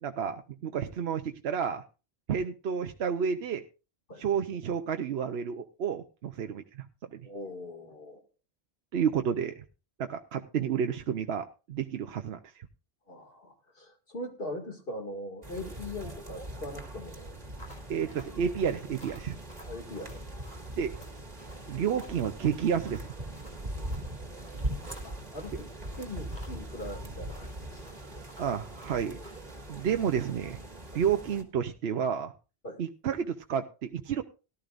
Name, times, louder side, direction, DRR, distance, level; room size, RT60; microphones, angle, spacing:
voice 1, 0.0-1.8 2.3-3.6 4.2-6.9 7.1-7.2 8.9-9.6 10.0-12.7 15.6-15.7 17.9-19.4 20.8-20.9 21.7-23.1 28.4-29.2 29.7-30.6 30.9-32.3 32.8-34.2, right 7 dB, 75° right, 6 dB, 1.0 m, -30 dB
voice 2, 7.2-8.2 13.1-17.4 19.7-20.2 25.0-25.7 26.0-27.9 28.1-28.2 30.9-31.0 32.6-32.8, left 1 dB, 65° left, 4 dB, 2.5 m, -41 dB
sound 1, 15.4-31.4, right 1 dB, 40° right, 1.9 m, -41 dB
sound 2, 17.6-29.6, equal, 45° left, 5.2 m, -54 dB
17.5 x 12.5 x 2.5 m, 0.31 s
omnidirectional pair, 1.1 m